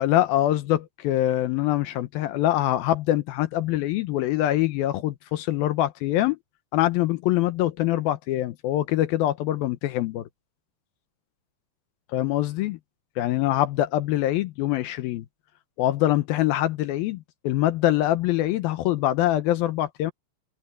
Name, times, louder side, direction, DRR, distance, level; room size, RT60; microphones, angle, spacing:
voice 1, 0.0-6.4 6.7-10.3 12.1-12.8 13.2-15.3 15.8-20.1, left 14 dB, 80° left, 2.3 m, -24 dB
omnidirectional pair, 5.0 m